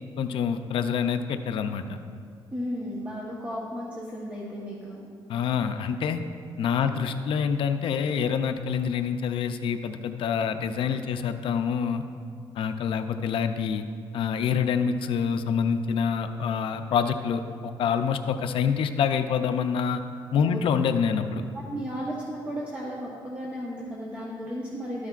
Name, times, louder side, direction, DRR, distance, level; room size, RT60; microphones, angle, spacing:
voice 1, 0.2-2.0 5.3-6.2 6.6-12.0 12.5-13.8 14.1-20.0 20.3-21.4, left 7 dB, 65° left, 8 dB, 0.5 m, -26 dB
voice 2, 2.5-5.0 6.7-7.0 20.4-20.6 21.5-25.1, equal, 15° right, -5 dB, 1.1 m, -34 dB
13.0 x 9.6 x 2.4 m, 2.3 s
cardioid pair, 140°, 9 cm